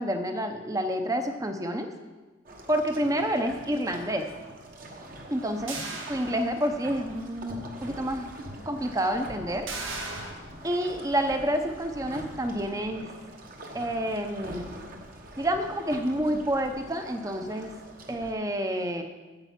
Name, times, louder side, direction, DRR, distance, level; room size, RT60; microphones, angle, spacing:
voice 1, 0.0-1.9 2.7-4.3 5.3-5.8 6.1-8.3 8.7-9.7 10.6-13.1 13.7-14.7 15.4-17.7 18.1-19.0, equal, 15° right, 6 dB, 0.7 m, -28 dB
sound 1, 2.5-18.3, right 1 dB, 45° right, 1.2 m, -44 dB
sound 2, 5.7-6.9 7.4-7.5 9.7-10.3, right 3 dB, 85° right, 1.6 m, -37 dB
8.8 x 8.0 x 5.8 m, 1.3 s
head